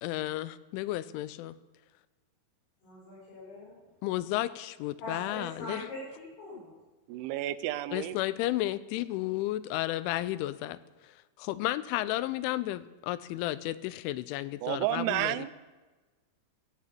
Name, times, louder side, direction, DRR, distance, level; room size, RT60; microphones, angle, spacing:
voice 1, 0.0-1.6 4.0-5.9 7.9-15.5, left 15 dB, 90° left, 16 dB, 3.1 m, -33 dB
voice 2, 2.8-3.8 5.0-6.7, left 2 dB, 70° left, -7 dB, 8.0 m, -42 dB
voice 3, 7.1-8.2 14.6-15.5, right 14 dB, 85° right, 14 dB, 3.1 m, -31 dB
15.0 x 11.0 x 8.7 m, 1.3 s
omnidirectional pair, 5.4 m